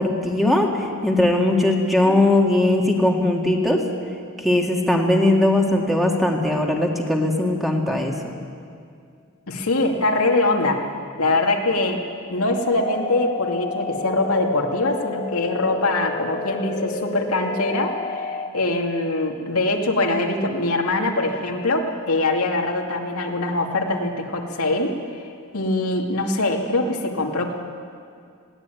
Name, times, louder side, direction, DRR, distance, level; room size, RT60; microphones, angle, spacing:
voice 1, 0.0-3.8 4.4-8.4, left 1 dB, ahead, 0 dB, 2.1 m, -19 dB
voice 2, 9.5-10.9 11.2-12.0 12.3-25.0 25.5-27.5, left 2 dB, 75° left, 1 dB, 2.4 m, -23 dB
sound 1, 12.8-18.5, left 4 dB, 40° left, 1.3 m, -30 dB
21.0 x 17.0 x 9.3 m, 2.3 s
head